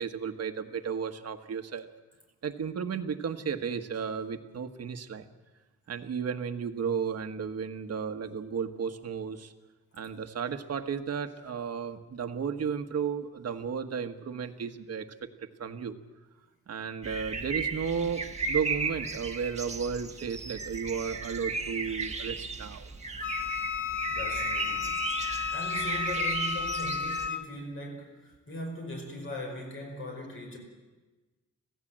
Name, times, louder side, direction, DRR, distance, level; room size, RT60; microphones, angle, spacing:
voice 1, 0.0-1.9 2.4-5.3 5.9-9.5 9.9-15.3 15.6-16.0 16.7-22.9, right 6 dB, 55° right, 7 dB, 1.4 m, -34 dB
sound 1, 17.0-27.3, right 3 dB, 20° right, 1.4 m, -35 dB
Wind instrument woodwind instrument, 23.2-27.5, left 6 dB, 85° left, 1.3 m, -33 dB
voice 2, 24.1-25.2 25.5-30.6, equal, 45° left, 1 dB, 5.4 m, -39 dB
26.0 x 16.5 x 7.6 m, 1.2 s
wide cardioid pair, 160°, 29 cm